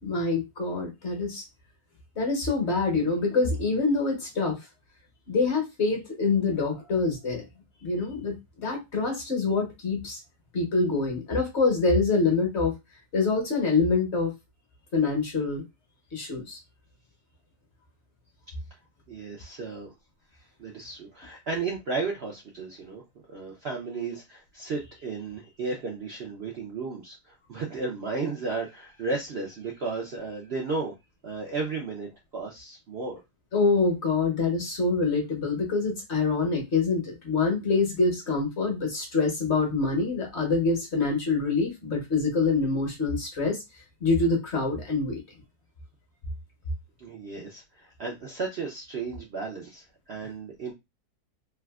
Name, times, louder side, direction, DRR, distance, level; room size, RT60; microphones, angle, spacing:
voice 1, 0.0-1.4 2.1-4.6 5.3-7.5 7.8-10.2 10.5-12.7 13.1-14.3 14.9-15.6 16.1-16.6 33.5-43.6 44.0-45.2, left 3 dB, 50° left, 0 dB, 1.2 m, -25 dB
voice 2, 19.1-19.9 20.4-23.0 23.3-30.9 31.2-33.2 47.0-50.7, right 4 dB, 55° right, -1 dB, 0.7 m, -34 dB
3.4 x 2.5 x 2.3 m, 0.22 s
omnidirectional pair, 1.7 m